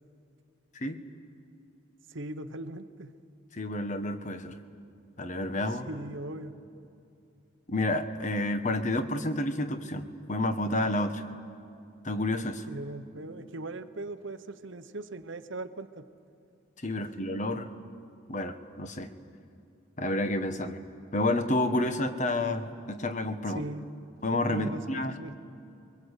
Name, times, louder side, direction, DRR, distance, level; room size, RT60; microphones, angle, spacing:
voice 1, 2.1-3.1 5.8-6.6 12.7-16.1 23.5-23.9 24.5-25.4, right 2 dB, 60° right, 10 dB, 1.0 m, -39 dB
voice 2, 3.5-4.6 5.2-5.9 7.7-11.2 12.0-12.7 16.8-17.7 18.3-19.1 20.0-20.8 21.1-23.6 24.2-25.1, left 1 dB, 35° left, 8 dB, 1.3 m, -30 dB
29.5 x 23.0 x 8.3 m, 2.6 s
head